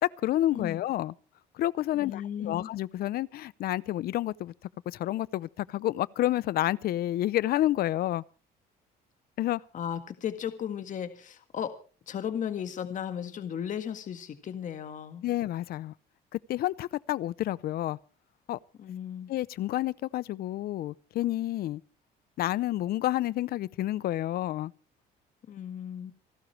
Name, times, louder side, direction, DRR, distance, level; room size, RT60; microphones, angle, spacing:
voice 1, 0.0-1.1 1.5-4.5 4.9-8.2 9.4-9.6 15.2-15.9 16.3-18.0 18.5-18.6 19.3-21.8 22.4-24.7, left 14 dB, 65° left, 0.6 m, -29 dB
voice 2, 1.9-2.7 9.7-11.7 12.1-15.3 18.8-19.3 25.5-26.1, left 9 dB, 50° left, 1.8 m, -35 dB
28.0 x 12.0 x 3.3 m
cardioid pair, 110°, 17 cm